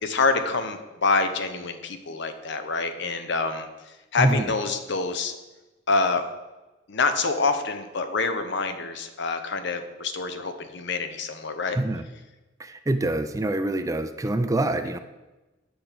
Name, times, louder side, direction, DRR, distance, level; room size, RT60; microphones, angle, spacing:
voice 1, 0.0-5.3 5.9-6.2 6.9-11.8, left 4 dB, 65° left, 8 dB, 0.8 m, -26 dB
voice 2, 12.6-15.0, right 2 dB, 15° right, 9 dB, 0.4 m, -25 dB
7.8 x 4.4 x 6.8 m, 1.1 s
head